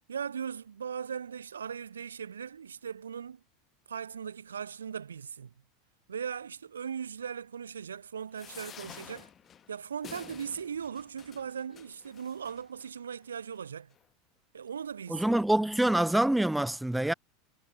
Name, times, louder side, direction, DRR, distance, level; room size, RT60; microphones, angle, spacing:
voice 1, 0.1-3.4 3.9-5.5 6.1-9.3 9.7-13.9 14.5-15.4, right 7 dB, 75° right, 0.5 m, -38 dB
sound 1, 8.3-12.9 13.5-13.6 13.9-14.0, left 9 dB, 30° left, 1.0 m, -50 dB
voice 2, 15.1-17.1, right 1 dB, 5° right, 0.4 m, -26 dB
figure-of-eight pair, 80°, 0 cm